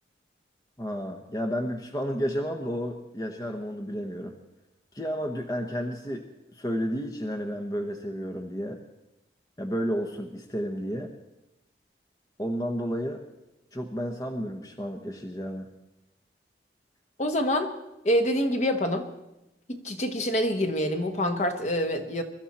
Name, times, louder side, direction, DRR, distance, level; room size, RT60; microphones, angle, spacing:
voice 1, 0.8-4.3 4.9-6.2 6.5-8.8 9.6-11.1 12.4-13.2 13.7-15.7, equal, 20° left, 4 dB, 1.0 m, -31 dB
voice 2, 17.2-17.7 18.0-19.0 19.7-22.2, equal, 40° left, 5 dB, 1.3 m, -26 dB
22.5 x 12.5 x 4.3 m, 0.93 s
head